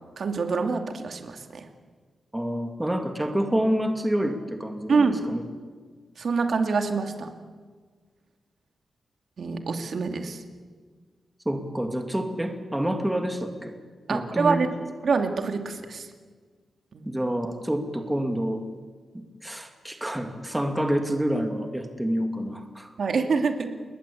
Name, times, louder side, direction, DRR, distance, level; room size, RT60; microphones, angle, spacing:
voice 1, 0.2-1.7 4.9-5.2 6.2-7.3 9.4-10.4 14.1-14.7 15.0-16.1 16.9-17.0 23.0-23.7, right 4 dB, 55° right, 5 dB, 2.6 m, -25 dB
voice 2, 2.3-5.4 11.5-13.7 14.1-14.6 17.1-18.6 19.1-22.9, equal, 10° right, 5 dB, 2.3 m, -28 dB
30.0 x 21.0 x 8.6 m, 1.5 s
wide cardioid pair, 130°, 0 cm